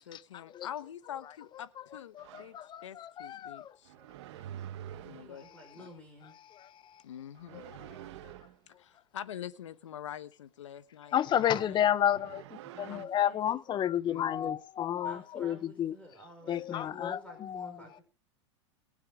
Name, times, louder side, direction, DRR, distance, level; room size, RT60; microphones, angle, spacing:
voice 1, 0.0-2.6 2.8-3.9 5.0-5.4 5.8-5.9 7.0-7.6 8.7-11.8 13.4-13.5 14.0-14.6, left 10 dB, 85° left, 1.1 m, -45 dB
voice 2, 2.1-3.7 7.5-7.6 11.1-12.4 12.8-15.9 16.5-17.7, left 10 dB, 30° left, 0.9 m, -31 dB
sound 1, 2.2-2.6 3.8-5.5 7.3-8.6 11.2-13.0, right 11 dB, 70° right, 1.1 m, -47 dB
voice 3, 4.9-6.3 12.7-13.6 15.0-18.0, equal, 10° left, 5.2 m, -51 dB
22.0 x 7.6 x 5.0 m
hypercardioid pair, 110°, 15 cm